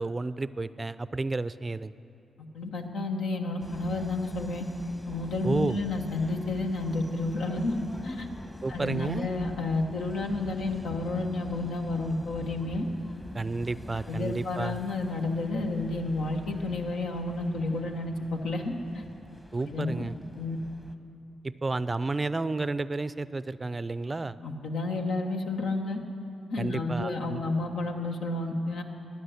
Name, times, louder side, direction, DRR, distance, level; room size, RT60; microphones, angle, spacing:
voice 1, 0.0-1.9 5.4-5.8 8.6-9.3 13.3-14.8 19.5-20.2 21.4-24.4 26.6-27.4, right 3 dB, 35° right, 16 dB, 0.4 m, -31 dB
voice 2, 2.5-4.6 5.0-8.3 8.7-12.9 14.1-19.0 19.6-20.1 20.3-20.6 24.4-26.0 26.5-28.8, left 2 dB, 80° left, 2 dB, 1.3 m, -31 dB
sound 1, 3.6-20.9, left 1 dB, 15° left, 1.2 m, -43 dB
13.0 x 9.7 x 8.0 m, 2.7 s
supercardioid pair, 45°, 0 cm